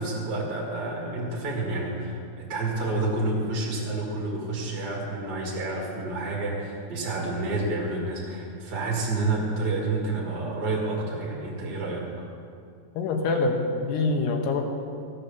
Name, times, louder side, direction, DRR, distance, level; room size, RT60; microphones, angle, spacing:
voice 1, 0.0-12.1, right 2 dB, 40° right, -4 dB, 1.6 m, -29 dB
voice 2, 13.0-14.6, left 3 dB, 80° left, 3 dB, 3.3 m, -25 dB
15.0 x 9.9 x 6.9 m, 2.4 s
omnidirectional pair, 4.8 m